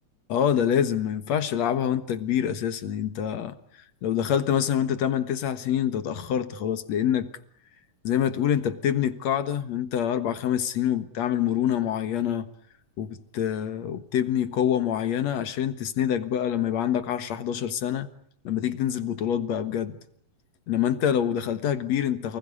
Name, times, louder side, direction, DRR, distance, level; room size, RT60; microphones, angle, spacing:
voice 1, 0.3-3.5 4.0-7.3 8.0-12.5 13.0-18.1 18.4-19.9 20.7-22.4, left 9 dB, 70° left, 2.6 m, -26 dB
29.0 x 20.5 x 9.9 m
omnidirectional pair, 3.3 m